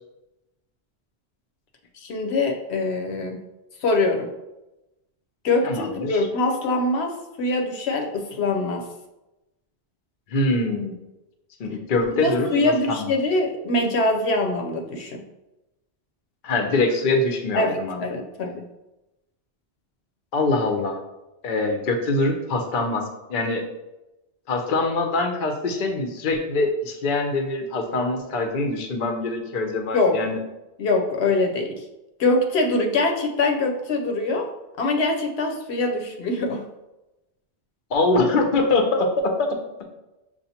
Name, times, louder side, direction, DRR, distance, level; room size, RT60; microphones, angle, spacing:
voice 1, 1.9-3.4 3.8-4.3 5.4-8.9 12.1-15.2 17.5-18.7 29.9-30.2 30.8-31.9 32.2-34.5 34.8-36.6, left 2 dB, 80° left, 2 dB, 0.9 m, -23 dB
voice 2, 10.3-10.9 11.6-13.1 16.4-18.0 20.3-21.0 21.4-23.0 23.3-23.6 24.5-30.4 37.9-39.1 39.4-39.5, left 2 dB, 55° left, 4 dB, 0.7 m, -23 dB
6.6 x 2.4 x 2.8 m, 0.98 s
omnidirectional pair, 1.1 m